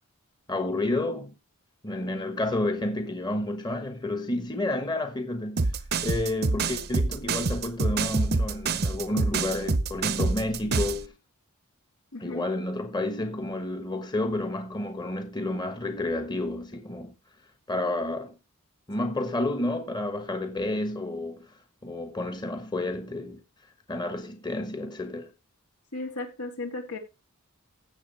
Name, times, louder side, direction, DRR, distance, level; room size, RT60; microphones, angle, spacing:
voice 1, 0.5-1.3 1.8-5.7 6.0-11.1 12.2-17.1 17.7-18.3 18.9-23.4 23.9-25.3, left 2 dB, 20° left, 1.2 m, -30 dB
sound 1, 5.6-11.0, right 3 dB, 45° right, 0.8 m, -26 dB
voice 2, 12.1-12.5 19.0-19.1 25.9-27.0, left 2 dB, 80° left, 3.7 m, -35 dB
16.0 x 7.1 x 3.3 m
head